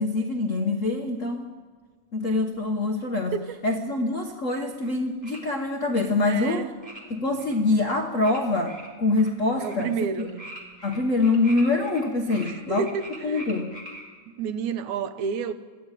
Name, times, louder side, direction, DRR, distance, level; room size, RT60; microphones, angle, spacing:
voice 1, 0.0-1.5 2.1-3.4 3.6-6.7 7.1-10.3 10.8-12.8 13.2-13.7, left 2 dB, 60° left, 3 dB, 0.8 m, -25 dB
sound 1, 4.7-4.9 5.2-5.4 6.8-7.0 7.4-7.6 8.2-8.4 8.6-9.3 9.6-9.8 10.2-12.0 12.3-14.0, right 1 dB, 15° right, 3.4 m, -42 dB
voice 2, 6.3-6.7 9.6-10.4 12.4-13.4 14.4-15.5, right 6 dB, 80° right, 10 dB, 2.4 m, -30 dB
22.5 x 14.0 x 9.0 m, 1.5 s
omnidirectional pair, 3.3 m